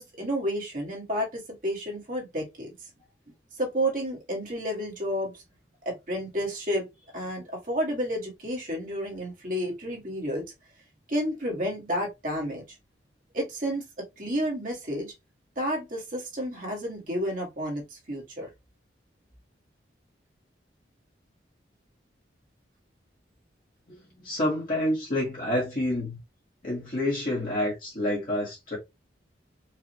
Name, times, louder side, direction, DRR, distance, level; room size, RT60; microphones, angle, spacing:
voice 1, 0.0-2.7 3.6-5.4 5.9-6.9 7.1-10.5 11.1-12.6 13.3-13.8 14.2-15.1 15.6-18.5, equal, 45° right, 1.6 m, -31 dB
voice 2, 23.9-26.2 26.6-28.8, left 1 dB, 45° left, 1.4 m, -28 dB
4.7 x 2.5 x 2.9 m
head